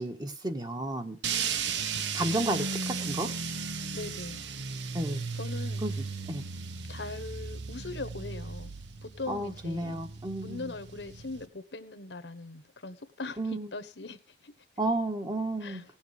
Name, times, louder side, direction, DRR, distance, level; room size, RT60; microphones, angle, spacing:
voice 1, 0.0-1.2 2.1-3.3 4.9-5.2 5.8-6.4 9.3-10.7 13.4-13.7 14.8-15.8, right 1 dB, 25° right, 1.4 m, -32 dB
sound 1, 1.2-11.5, right 5 dB, 80° right, 0.9 m, -35 dB
voice 2, 1.3-2.0 3.9-4.4 5.3-5.8 6.9-8.7 9.0-10.0 10.4-14.5 15.6-15.8, left 3 dB, 80° left, 1.3 m, -41 dB
17.5 x 7.2 x 4.9 m
head